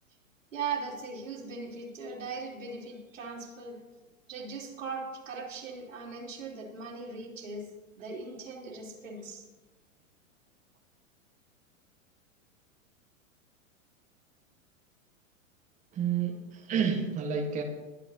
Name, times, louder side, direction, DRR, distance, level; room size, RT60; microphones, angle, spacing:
voice 1, 0.5-3.8 4.3-7.7 8.0-9.5, right 4 dB, 65° right, -1 dB, 3.5 m, -39 dB
voice 2, 15.9-17.6, right 7 dB, 20° right, 2 dB, 1.3 m, -30 dB
21.5 x 11.5 x 2.8 m, 1.1 s
figure-of-eight pair, 100°, 41 cm